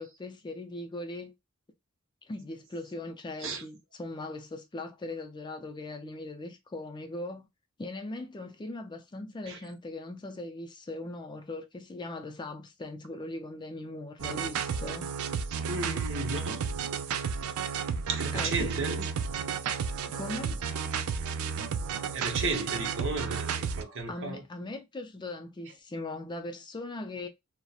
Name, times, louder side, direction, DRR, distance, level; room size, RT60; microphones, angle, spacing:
voice 1, 0.0-1.3 2.3-7.5 7.8-15.1 18.3-19.0 20.1-20.6 24.1-27.3, left 2 dB, 20° left, 0.4 m, -39 dB
sound 1, 14.2-23.8, right 6 dB, 80° right, 0.4 m, -32 dB
voice 2, 15.7-16.6 18.1-19.0 22.0-24.4, right 3 dB, 65° right, 0.8 m, -34 dB
2.8 x 2.1 x 2.3 m
head